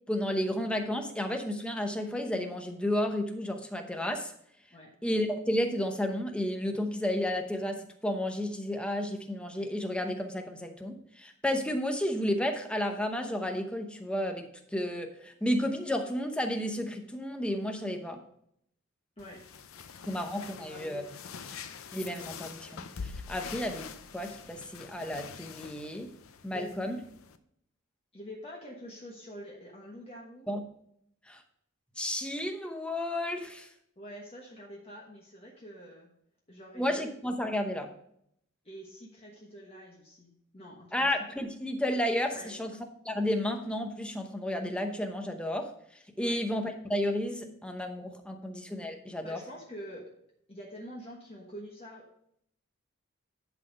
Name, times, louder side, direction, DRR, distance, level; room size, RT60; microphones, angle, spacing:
voice 1, 0.1-4.3 5.0-18.2 20.1-21.0 21.9-26.1 26.4-27.0 30.5-30.6 31.3-31.4 32.0-33.7 36.8-37.9 40.9-42.8 43.0-45.7 46.2-49.4, left 1 dB, 5° left, 4 dB, 0.8 m, -32 dB
sound 1, 19.2-27.4, left 6 dB, 90° left, 0.6 m, -45 dB
voice 2, 20.7-21.1 26.5-27.0 28.1-30.5 34.0-36.1 36.5-37.0 38.6-41.1 42.3-42.5 46.2-46.4 49.2-50.1 50.5-52.1, equal, 30° left, -3 dB, 1.3 m, -46 dB
11.0 x 4.2 x 5.3 m, 0.71 s
head